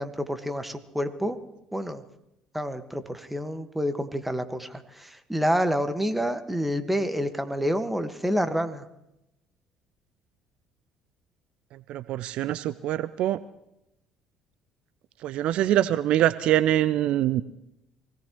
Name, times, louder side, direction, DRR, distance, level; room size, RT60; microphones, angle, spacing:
voice 1, 0.0-1.4 1.7-2.0 2.5-8.9, equal, 5° right, 8 dB, 1.6 m, -28 dB
voice 2, 11.9-13.4 15.2-17.4, right 13 dB, 60° right, 16 dB, 0.5 m, -24 dB
24.5 x 18.0 x 3.1 m, 0.88 s
figure-of-eight pair, 55°, 2 cm